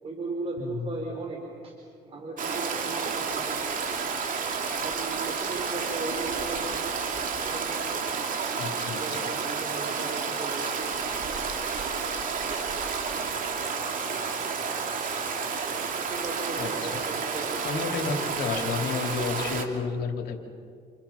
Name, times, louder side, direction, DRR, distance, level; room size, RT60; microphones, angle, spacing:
voice 1, 0.0-1.7 2.0-3.7 4.8-7.0 7.3-8.0 8.8-10.9 11.4-11.9 15.9-18.0, right 3 dB, 35° right, 1 dB, 4.3 m, -37 dB
voice 2, 0.6-0.9 8.6-9.2 16.6-17.0 17.6-20.4, left 5 dB, 70° left, 4 dB, 3.4 m, -31 dB
Stream, 2.4-19.6, right 5 dB, 50° right, 3.0 m, -30 dB
29.5 x 29.0 x 5.9 m, 2.1 s
cardioid pair, 110°, 17 cm